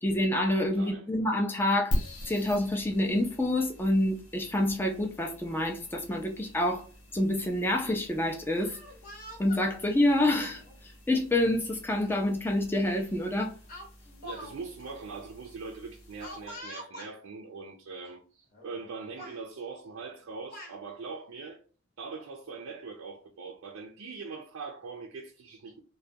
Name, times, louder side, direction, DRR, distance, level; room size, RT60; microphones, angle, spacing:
voice 1, 0.0-1.9 2.3-6.8 7.1-8.8 9.4-13.6, left 1 dB, 10° left, 0.4 m, -27 dB
voice 2, 0.7-1.1 14.2-21.6 22.0-25.8, right 4 dB, 80° right, 0.4 m, -42 dB
sound 1, 1.9-16.6, equal, 85° left, 0.8 m, -42 dB
Speech, 8.5-9.6 10.6-10.8 12.0-12.1 12.5-12.7 13.7-14.5 14.8-14.9 16.2-17.1 18.0-18.1 18.5-18.9 19.2-19.4 20.2-20.8, left 1 dB, 40° left, 0.8 m, -45 dB
2.3 x 2.2 x 2.6 m
head